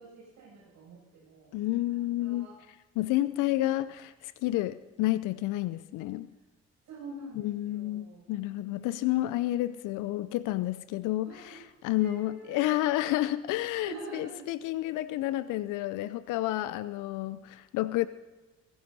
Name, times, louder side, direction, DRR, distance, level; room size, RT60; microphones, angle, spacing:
voice 1, 0.0-1.5 1.9-2.6 3.4-3.6 6.8-9.3 11.2-12.6 13.8-14.5, right 2 dB, 65° right, 7.4 m, -47 dB
voice 2, 1.5-2.5 3.0-6.3 7.4-18.1, left 15 dB, 65° left, 0.6 m, -30 dB
29.5 x 16.0 x 2.8 m
hypercardioid pair, 45°, 34 cm